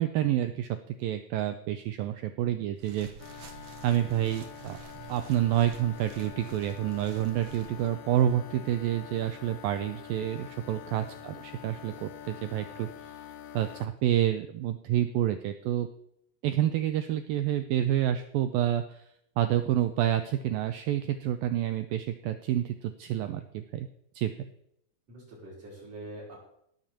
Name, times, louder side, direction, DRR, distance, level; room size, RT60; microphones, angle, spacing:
voice 1, 0.0-3.1 3.8-4.8 5.1-12.9 13.5-15.9 16.4-18.8 19.4-23.9 24.2-24.5, right 11 dB, 90° right, 9 dB, 2.0 m, -28 dB
sound 1, 2.7-7.9, right 6 dB, 65° right, 1.6 m, -49 dB
sound 2, 3.2-13.9, left 10 dB, 75° left, 2.8 m, -46 dB
voice 2, 10.7-11.1 25.1-26.4, right 1 dB, 35° right, -3 dB, 6.0 m, -45 dB
17.0 x 5.8 x 7.5 m, 0.74 s
omnidirectional pair, 4.9 m